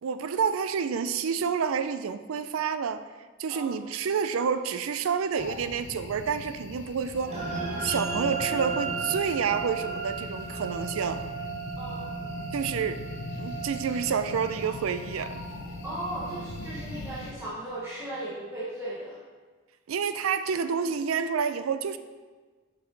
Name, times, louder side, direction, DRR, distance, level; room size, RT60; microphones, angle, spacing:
voice 1, 0.0-3.0 3.4-7.4 7.8-11.2 12.5-13.0 13.4-15.4 19.9-22.0, right 6 dB, 85° right, 11 dB, 0.4 m, -29 dB
sound 1, 5.4-17.3, left 2 dB, 65° left, 0.5 m, -41 dB
sound 2, 7.3-17.9, right 4 dB, 35° right, 1.1 m, -36 dB
voice 2, 15.8-19.2 20.8-20.9, right 1 dB, 15° right, -9 dB, 1.2 m, -36 dB
6.4 x 5.5 x 3.9 m, 1.4 s
head